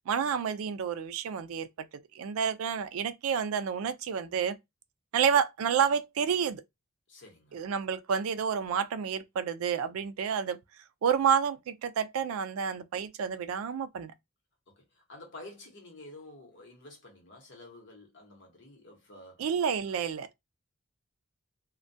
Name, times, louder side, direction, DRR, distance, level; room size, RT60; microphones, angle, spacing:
voice 1, 0.1-1.9 2.1-4.6 5.1-6.6 7.5-10.6 11.0-14.1 19.4-20.3, right 7 dB, 85° right, 0.3 m, -29 dB
voice 2, 7.1-7.6 14.7-19.5 19.9-20.0, left 2 dB, 55° left, 0.9 m, -50 dB
2.2 x 2.2 x 2.5 m
head